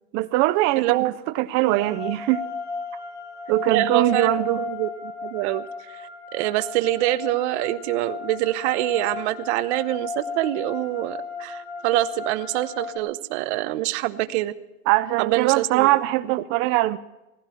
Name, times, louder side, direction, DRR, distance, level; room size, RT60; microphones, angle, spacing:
voice 1, 0.1-2.4 3.5-4.6 14.9-17.0, right 17 dB, 35° right, 11 dB, 0.5 m, -22 dB
voice 2, 0.8-1.1 3.7-4.9 5.2-6.0 6.3-14.5 15.2-15.9, right 16 dB, 60° right, 12 dB, 1.1 m, -25 dB
sound 1, 1.6-13.0, left 4 dB, 25° left, 2.3 m, -34 dB
18.0 x 16.0 x 4.5 m, 0.99 s
supercardioid pair, 160°, 38 cm